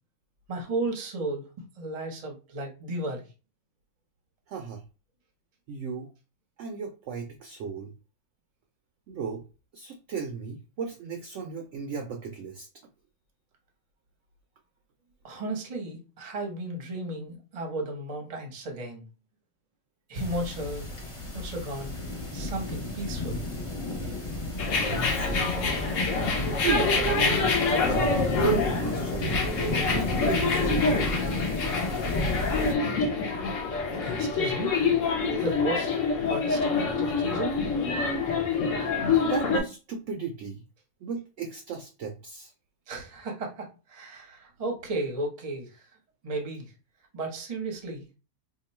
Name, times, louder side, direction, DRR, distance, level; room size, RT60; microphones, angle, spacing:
voice 1, 0.5-1.5 1.8-3.2 15.2-19.0 20.1-20.9 21.3-22.0 22.3-23.4 34.0-34.9 35.4-36.0 36.3-37.6 42.9-45.7 46.2-46.7 47.1-48.0, right 2 dB, 35° right, 0.7 m, -34 dB
voice 2, 4.5-4.8 5.7-6.1 6.6-7.9 9.1-9.4 9.7-12.7 24.9-25.6 26.6-29.4 29.8-31.1 39.3-40.6 41.0-42.5, right 6 dB, 70° right, 0.7 m, -35 dB
sound 1, 20.1-32.7, left 2 dB, 30° left, 0.7 m, -32 dB
sound 2, 24.6-39.6, left 4 dB, 60° left, 1.0 m, -26 dB
2.9 x 2.3 x 4.1 m
omnidirectional pair, 1.6 m